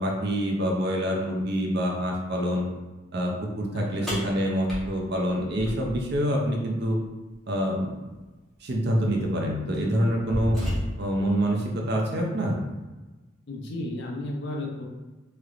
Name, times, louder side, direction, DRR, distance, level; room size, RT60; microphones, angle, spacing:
voice 1, 0.0-2.7 3.1-7.0 7.5-7.9 8.6-10.6 11.0-12.6, equal, 55° right, 0 dB, 0.6 m, -26 dB
voice 2, 3.7-4.2 13.5-14.8, left 1 dB, 60° left, 0 dB, 0.6 m, -34 dB
sound 1, 4.1-6.2 8.1-8.2 9.1-9.3 9.7-11.2, equal, ahead, 1.0 m, -32 dB
3.2 x 2.9 x 2.5 m, 1.2 s
head